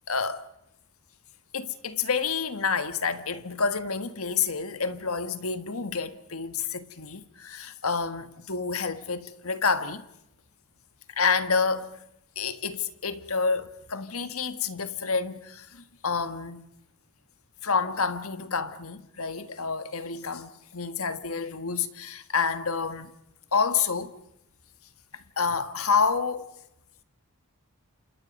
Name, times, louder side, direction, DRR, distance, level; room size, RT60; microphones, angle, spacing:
voice 1, 0.1-0.4 1.5-10.0 11.1-11.9 12.3-16.6 17.6-23.1 23.5-24.1 25.4-26.5, left 5 dB, 70° left, 1.7 m, -28 dB
29.0 x 27.5 x 5.4 m
head